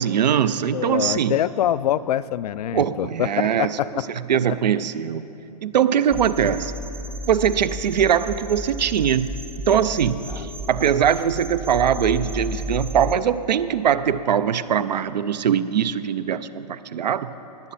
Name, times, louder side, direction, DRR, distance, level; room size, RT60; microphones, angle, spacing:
voice 1, 0.0-1.4 2.7-3.7 4.3-5.2 5.6-6.7 7.3-9.3 9.7-17.3, right 8 dB, 90° right, 14 dB, 0.5 m, -21 dB
voice 2, 0.7-3.3 3.6-4.1 10.2-10.5, left 11 dB, 65° left, 17 dB, 0.4 m, -25 dB
sound 1, 6.1-13.2, left 1 dB, 10° right, 0.5 m, -33 dB
18.5 x 9.9 x 4.2 m, 3.0 s
hypercardioid pair, 140°, 21 cm